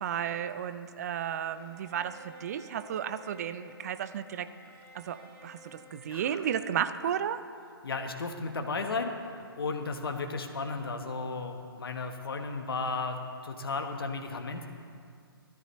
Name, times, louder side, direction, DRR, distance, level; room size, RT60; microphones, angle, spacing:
voice 1, 0.0-4.5 4.9-7.4, right 9 dB, 40° right, 12 dB, 0.7 m, -33 dB
Bowed string instrument, 1.5-7.6, left 1 dB, 20° right, 2.1 m, -54 dB
voice 2, 6.1-6.4 7.8-13.2 13.4-14.7, left 3 dB, 65° left, 4 dB, 1.4 m, -34 dB
19.5 x 13.5 x 3.3 m, 2.3 s
figure-of-eight pair, 135°, 13 cm